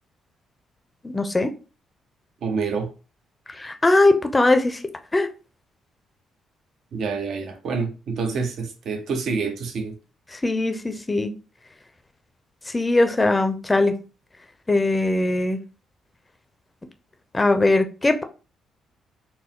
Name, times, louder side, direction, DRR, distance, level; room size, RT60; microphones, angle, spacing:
voice 1, 1.0-1.5 3.6-4.8 5.1-5.3 10.3-11.3 12.7-13.9 14.7-15.6 17.3-18.2, left 2 dB, 20° left, 0.6 m, -20 dB
voice 2, 2.4-2.9 6.9-10.0, right 4 dB, 65° right, 0.8 m, -27 dB
4.3 x 2.0 x 3.7 m
cardioid pair, 90°, 0 cm